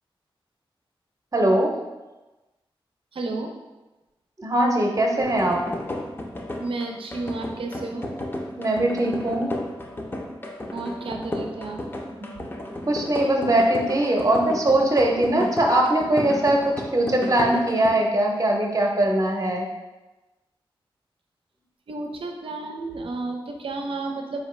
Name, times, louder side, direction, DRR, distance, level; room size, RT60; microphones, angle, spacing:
voice 1, 1.3-1.7 4.4-5.6 8.6-9.6 12.9-19.7, right 1 dB, 35° right, 0 dB, 0.7 m, -21 dB
voice 2, 3.1-3.5 6.6-8.1 10.7-11.8 12.4-12.5 21.9-24.4, right 3 dB, 70° right, 2 dB, 0.5 m, -32 dB
sound 1, 5.2-17.9, left 1 dB, 25° left, 0.6 m, -33 dB
4.1 x 2.7 x 3.1 m, 1.1 s
cardioid pair, 55°, 10 cm